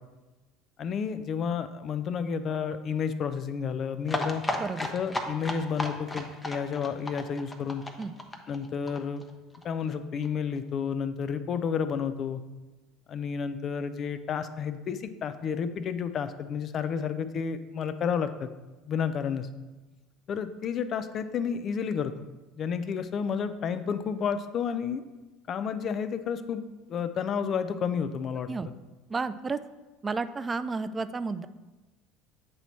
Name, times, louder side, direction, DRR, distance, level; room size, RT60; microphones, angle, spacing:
voice 1, 0.8-4.4 4.9-7.8 8.5-9.2 9.6-12.4 13.1-18.5 18.9-19.5 20.3-22.1 22.6-25.0 25.5-26.6 26.9-28.5, left 6 dB, 45° left, 11 dB, 0.4 m, -31 dB
sound 1, 4.0-9.6 9.9-10.0 10.2-10.3 10.6-10.7, left 1 dB, 15° left, 0.8 m, -34 dB
voice 2, 29.1-29.6 30.0-31.5, right 4 dB, 25° right, 12 dB, 0.3 m, -31 dB
7.6 x 3.0 x 4.1 m, 1.2 s
hypercardioid pair, 70°, 0 cm